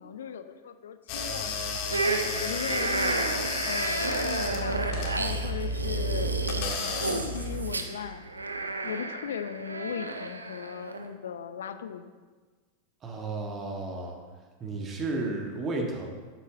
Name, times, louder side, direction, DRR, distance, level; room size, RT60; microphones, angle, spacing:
voice 1, 0.0-1.9 2.2-8.2 8.8-12.1, left 7 dB, 65° left, 11 dB, 0.6 m, -38 dB
sound 1, 1.1-7.8, left 2 dB, 45° left, 1.7 m, -32 dB
sound 2, 1.9-11.1, right 3 dB, 80° right, 0.8 m, -32 dB
voice 2, 13.0-14.2 14.6-16.1, right 2 dB, 25° right, 1 dB, 1.8 m, -32 dB
12.0 x 8.7 x 3.7 m, 1.4 s
figure-of-eight pair, 90°, 0 cm